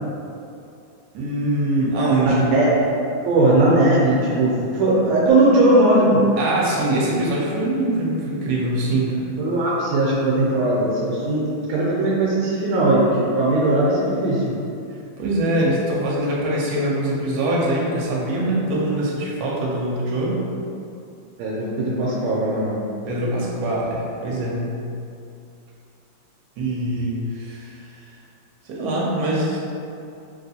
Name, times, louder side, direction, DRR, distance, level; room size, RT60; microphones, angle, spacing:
voice 1, 1.1-2.5 6.4-9.3 15.2-20.4 23.1-24.7 26.6-28.1 28.6-29.6, right 1 dB, 65° right, -5 dB, 1.1 m, -23 dB
voice 2, 2.2-2.7 3.2-6.3 9.4-14.4 21.4-22.7, right 1 dB, 90° right, -6 dB, 1.5 m, -19 dB
3.2 x 2.9 x 2.7 m, 2.6 s
omnidirectional pair, 2.3 m